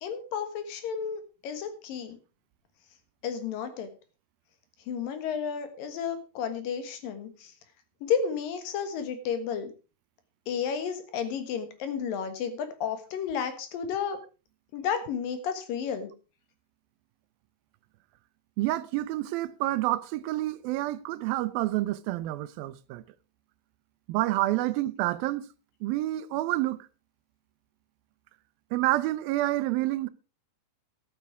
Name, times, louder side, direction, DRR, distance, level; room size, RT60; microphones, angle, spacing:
voice 1, 0.0-2.2 3.2-3.9 4.9-7.5 8.0-9.7 10.5-14.2 14.7-16.1, left 7 dB, 70° left, 3.1 m, -32 dB
voice 2, 18.6-23.0 24.1-25.5 25.8-26.9 28.7-30.1, right 16 dB, 85° right, 2.5 m, -28 dB
11.5 x 8.9 x 4.7 m
omnidirectional pair, 4.2 m